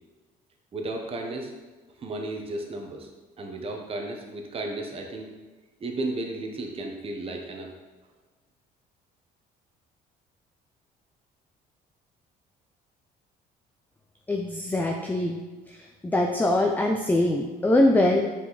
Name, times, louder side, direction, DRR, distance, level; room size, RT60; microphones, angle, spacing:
voice 1, 0.7-1.5 2.0-3.1 3.4-5.3 5.8-7.7, right 2 dB, 35° right, 2 dB, 1.0 m, -33 dB
voice 2, 14.3-15.4 15.7-18.2, left 1 dB, 10° left, 2 dB, 0.5 m, -23 dB
5.8 x 5.0 x 4.0 m, 1.3 s
cardioid pair, 110°, 17 cm